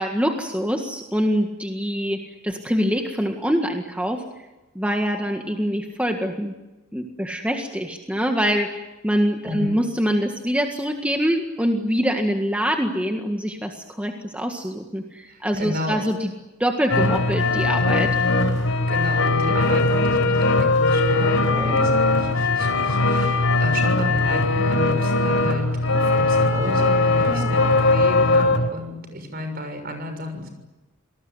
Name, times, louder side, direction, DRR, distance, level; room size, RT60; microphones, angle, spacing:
voice 1, 0.0-2.2 2.4-4.2 4.8-6.5 6.9-16.3 16.6-18.1 21.5-21.8 27.3-27.5, equal, 5° right, 3 dB, 1.8 m, -24 dB
voice 2, 9.4-9.8 15.3-16.0 18.9-30.5, equal, 45° right, 7 dB, 6.6 m, -32 dB
sound 1, 16.9-28.7, left 2 dB, 80° left, 4.2 m, -20 dB
28.0 x 19.5 x 9.8 m, 1.1 s
head